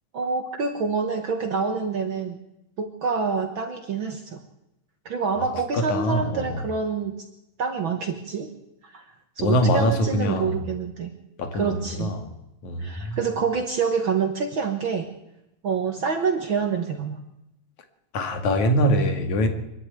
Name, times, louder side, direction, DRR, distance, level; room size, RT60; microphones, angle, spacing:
voice 1, 0.1-2.4 2.8-4.4 5.0-7.3 7.6-8.5 8.8-9.0 9.4-11.1 11.5-12.1 12.8-15.1 15.6-17.2, right 5 dB, 50° right, 1.7 m, -27 dB
voice 2, 5.7-6.6 9.4-10.6 11.4-12.3 12.6-13.2 18.1-19.5, equal, 70° left, 3.4 m, -23 dB
24.5 x 11.5 x 9.2 m
omnidirectional pair, 3.5 m